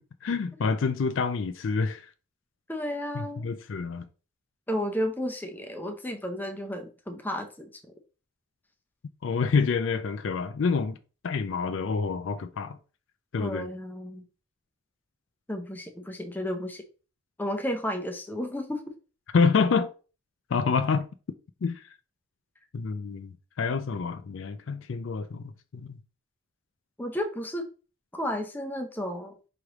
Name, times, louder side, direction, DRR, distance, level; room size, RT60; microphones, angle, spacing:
voice 1, 0.2-2.1 3.1-4.1 9.2-11.0 11.2-12.8 13.3-13.7 19.3-19.9 20.5-21.1 21.6-21.8 22.7-26.0, left 5 dB, 60° left, 0.4 m, -27 dB
voice 2, 2.7-3.5 4.7-7.7 13.4-14.2 15.5-16.8 17.4-18.8 27.0-27.7 28.1-29.4, equal, 10° left, 0.5 m, -32 dB
4.9 x 3.2 x 2.9 m
head